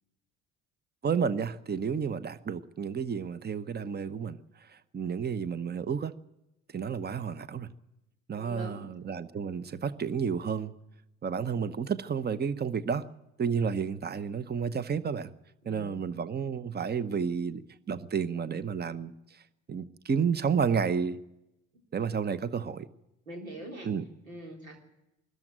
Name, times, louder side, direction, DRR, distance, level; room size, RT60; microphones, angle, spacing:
voice 1, 1.0-6.1 6.7-7.7 8.3-10.7 11.2-13.1 13.4-15.3 15.6-17.6 17.9-19.4 19.7-21.2 21.9-22.9 23.8-24.0, right 6 dB, 25° right, 1.0 m, -31 dB
voice 2, 8.3-8.9 23.3-23.9 24.2-24.8, right 1 dB, 90° right, 3.6 m, -43 dB
22.0 x 13.5 x 9.1 m
hypercardioid pair, 60°, 40 cm